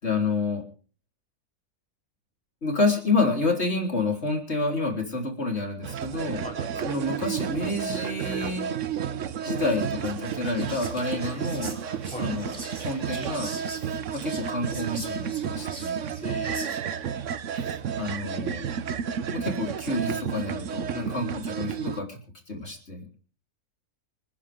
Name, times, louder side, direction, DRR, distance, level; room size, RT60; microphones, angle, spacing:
voice 1, 0.0-0.6 2.6-6.5 6.8-8.7 9.4-11.8 12.2-12.6 12.8-13.5 14.1-16.1 17.5-18.7 19.3-22.2 22.5-23.0, left 3 dB, 45° left, 2 dB, 3.9 m, -29 dB
sound 1, 5.8-22.0, right 8 dB, 60° right, 1.1 m, -32 dB
voice 2, 6.4-6.9 12.1-12.6 16.2-16.7 20.9-21.3, left 1 dB, 5° left, 2 dB, 3.5 m, -38 dB
Whispering, 9.6-17.1, right 2 dB, 45° right, 3.8 m, -43 dB
27.5 x 10.5 x 3.5 m, 0.36 s
omnidirectional pair, 1.6 m